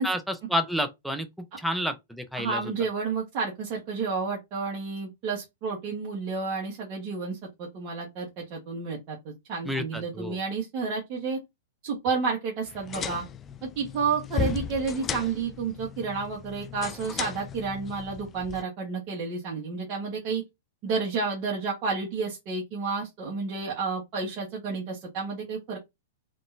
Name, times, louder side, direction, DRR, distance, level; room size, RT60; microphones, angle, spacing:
voice 1, 0.0-2.6 9.6-10.4, equal, ahead, 0.8 m, -30 dB
voice 2, 2.4-11.4 11.8-13.2 13.6-20.4 20.8-25.8, right 4 dB, 40° right, 1.7 m, -31 dB
sound 1, 12.7-18.6, left 8 dB, 25° left, 0.3 m, -36 dB
3.7 x 3.6 x 2.7 m
hypercardioid pair, 125°, 0 cm